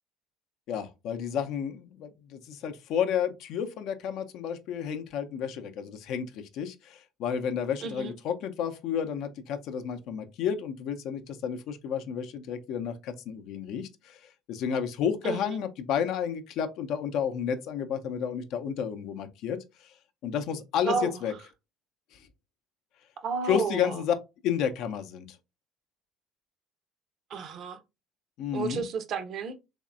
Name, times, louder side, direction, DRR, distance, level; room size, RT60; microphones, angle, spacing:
voice 1, 0.7-14.2 14.5-19.9 20.2-21.3 22.1-22.2 23.5-24.1 24.4-25.4 28.4-28.8, left 8 dB, 60° left, 0.5 m, -31 dB
voice 2, 7.8-8.1 15.2-15.6 20.8-21.2 23.2-24.0 27.3-27.8 28.5-29.6, right 5 dB, 50° right, 0.6 m, -32 dB
3.5 x 3.1 x 2.4 m
hypercardioid pair, 60°, 0 cm